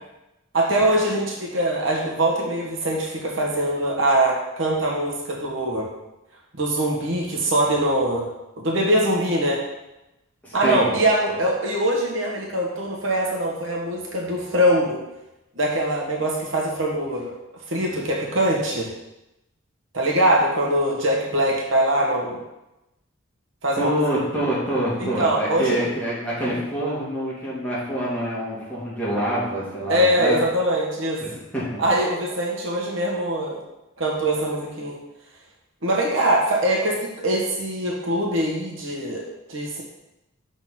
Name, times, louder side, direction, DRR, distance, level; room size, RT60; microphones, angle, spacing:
voice 1, 0.5-5.9 6.6-8.2 8.6-9.6 10.5-15.0 15.6-17.3 17.7-18.9 19.9-22.4 23.6-23.9 25.0-25.9 29.9-31.2 31.8-33.6 34.0-35.0 35.8-39.2 39.5-39.8, right 1 dB, 70° right, -2 dB, 1.4 m, -22 dB
voice 2, 10.4-10.9 23.8-30.4 31.2-31.8, right 1 dB, 5° left, -9 dB, 2.3 m, -26 dB
6.2 x 3.9 x 5.8 m, 0.94 s
head